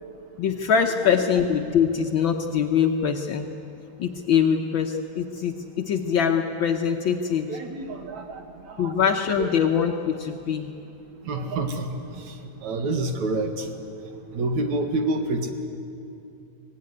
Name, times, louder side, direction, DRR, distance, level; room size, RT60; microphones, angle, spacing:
voice 1, 0.4-3.5 4.0-7.5 8.8-10.7, left 7 dB, 85° left, 3 dB, 1.0 m, -23 dB
voice 2, 7.5-8.4 8.7-9.5 11.2-11.9 12.3-12.4 12.6-13.7 14.3-15.5, right 2 dB, 70° right, 5 dB, 3.0 m, -28 dB
25.0 x 18.0 x 9.6 m, 2.6 s
omnidirectional pair, 3.6 m